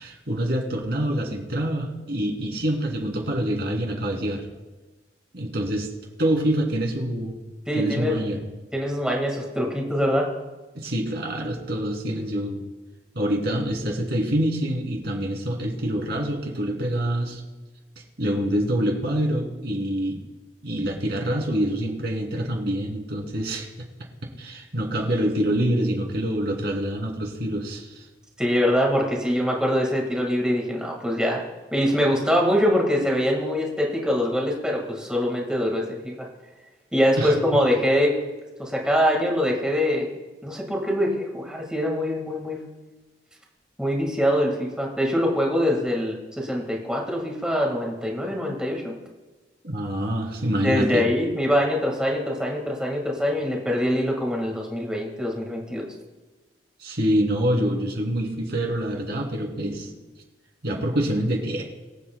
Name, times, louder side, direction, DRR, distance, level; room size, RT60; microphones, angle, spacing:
voice 1, 0.0-4.4 5.3-5.9 6.2-7.4 7.7-8.4 10.7-12.6 13.1-17.4 18.2-20.2 20.6-23.7 24.4-28.0 37.2-37.3 49.6-51.0 56.8-59.9 60.6-61.6, right 1 dB, 65° right, 0 dB, 2.7 m, -26 dB
voice 2, 7.7-8.1 8.7-10.3 28.4-31.4 31.7-36.3 36.9-38.1 38.6-40.1 40.4-42.6 43.8-48.9 50.6-55.9, equal, 5° right, -1 dB, 1.7 m, -23 dB
24.0 x 8.3 x 2.2 m, 1.2 s
head